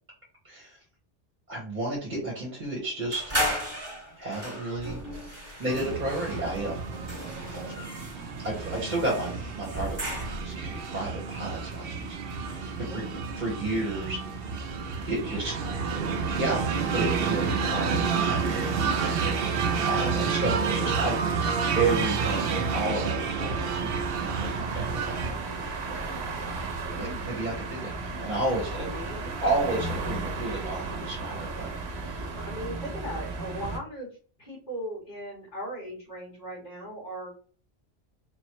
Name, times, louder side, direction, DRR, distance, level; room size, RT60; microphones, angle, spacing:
voice 1, 0.4-0.8 1.5-3.3 4.2-5.0 5.6-6.8 7.5-7.6 8.4-9.3 9.6-10.0 10.4-13.0 13.4-14.2 15.1-15.5 16.3-21.2 21.7-25.4 26.9-28.9 29.4-32.3, right 2 dB, 45° right, -3 dB, 1.4 m, -32 dB
sound 1, 3.1-10.6, equal, 25° right, 1.8 m, -35 dB
sound 2, 5.7-25.3, right 5 dB, 65° right, 0.8 m, -29 dB
voice 2, 12.9-13.2 15.2-16.1 25.6-26.3 26.8-27.1 27.4-27.6 28.7-29.3 32.4-34.1 34.4-37.3, equal, 50° left, -6 dB, 2.5 m, -39 dB
sound 3, 23.5-33.8, right 3 dB, 90° right, 1.0 m, -35 dB
4.0 x 3.0 x 3.0 m, 0.40 s
omnidirectional pair, 1.1 m